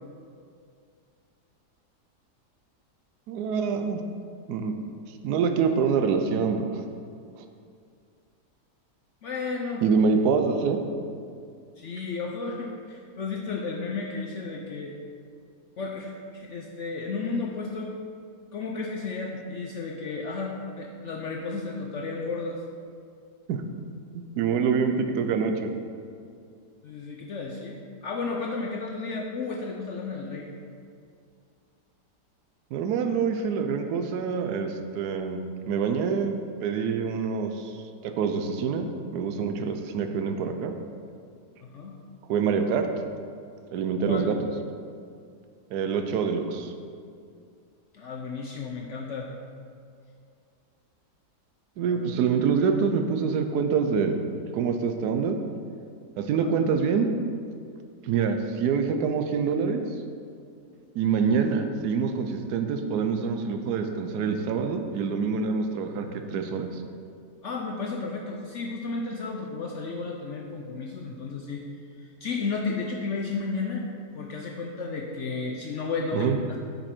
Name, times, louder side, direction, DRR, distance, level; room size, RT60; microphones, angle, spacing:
voice 1, 3.3-4.0 4.5-4.7 5.2-6.9 9.8-10.8 23.5-23.6 24.1-25.7 32.7-35.4 35.7-40.7 42.3-42.9 43.7-44.3 45.7-46.7 51.8-54.2 54.5-55.4 56.2-57.1 58.0-59.8 60.9-66.7 76.1-76.4, right 6 dB, 75° right, 6 dB, 1.2 m, -26 dB
voice 2, 9.2-9.8 11.8-14.9 15.8-17.9 18.5-22.6 26.8-30.5 41.6-42.0 44.1-44.3 47.9-49.3 51.9-52.0 67.4-71.6 72.0-73.8 74.1-76.6, left 4 dB, 65° left, 0 dB, 0.8 m, -33 dB
8.5 x 5.5 x 4.4 m, 2.3 s
omnidirectional pair, 1.8 m